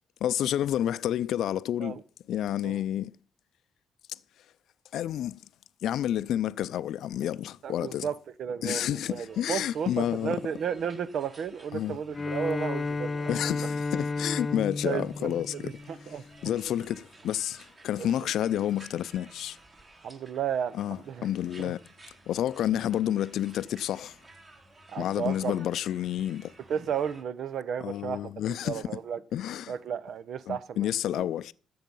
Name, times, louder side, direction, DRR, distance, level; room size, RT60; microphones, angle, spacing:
voice 1, 0.2-2.0 2.3-3.1 4.1-4.2 4.9-5.4 5.8-8.1 8.6-10.4 11.7-12.0 13.3-15.7 16.4-19.6 20.7-21.8 22.3-24.2 25.0-26.5 27.8-28.9 29.3-29.7 30.5-31.5, left 11 dB, 75° left, 0.5 m, -30 dB
voice 2, 7.6-13.4 14.8-16.2 18.0-18.1 20.0-21.3 21.6-21.7 24.9-25.6 26.7-28.3 28.6-29.2 29.7-31.3, right 8 dB, 65° right, 0.8 m, -33 dB
sound 1, 9.1-27.2, right 2 dB, 35° right, 3.5 m, -55 dB
Bowed string instrument, 12.1-16.4, left 3 dB, 25° left, 0.6 m, -33 dB
13.0 x 7.8 x 5.4 m
cardioid pair, 90°, 0 cm